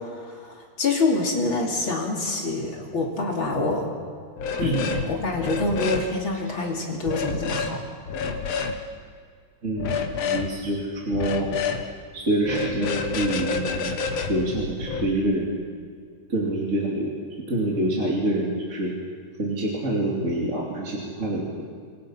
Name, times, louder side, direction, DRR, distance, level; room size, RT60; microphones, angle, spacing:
voice 1, 0.0-3.9 4.6-7.8, left 2 dB, 35° left, -1 dB, 3.4 m, -26 dB
sound 1, 4.4-5.1 5.3-6.1 7.1-7.7 8.1-8.7 9.8-10.5 11.1-11.8 12.4-15.1, left 5 dB, 55° left, 2.0 m, -28 dB
voice 2, 9.6-11.5 12.1-14.0 14.3-15.6 16.3-17.1 17.5-18.9 19.4-21.6, right 1 dB, 25° right, -3 dB, 2.4 m, -26 dB
27.0 x 22.5 x 5.8 m, 2.2 s
omnidirectional pair, 4.4 m